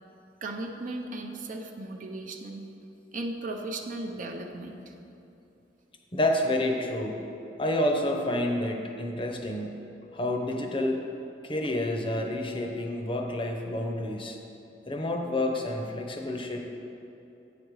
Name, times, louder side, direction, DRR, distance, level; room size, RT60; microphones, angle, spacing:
voice 1, 0.4-2.7 3.1-4.8, right 2 dB, 50° right, 3 dB, 0.6 m, -36 dB
voice 2, 6.1-7.3 7.6-9.9 10.1-11.0 11.4-14.4 14.9-16.6, left 1 dB, 30° left, 2 dB, 0.7 m, -29 dB
8.6 x 5.1 x 4.7 m, 2.9 s
head